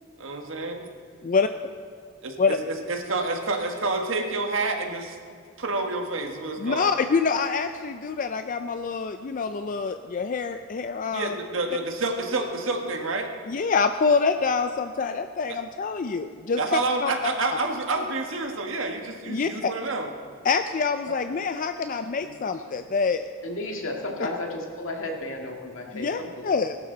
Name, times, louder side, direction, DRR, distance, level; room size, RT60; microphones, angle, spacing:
voice 1, 0.2-0.8 2.2-5.2 5.6-6.9 11.1-13.3 15.5-15.6 16.6-20.1, right 3 dB, 70° right, 4 dB, 1.5 m, -28 dB
voice 2, 6.6-11.4 13.5-17.1 19.3-19.7 20.4-23.2 25.9-26.8, left 5 dB, 40° left, 8 dB, 0.4 m, -26 dB
voice 3, 23.4-26.5, left 2 dB, 75° left, 1 dB, 2.0 m, -33 dB
18.5 x 12.0 x 3.9 m, 2.3 s
head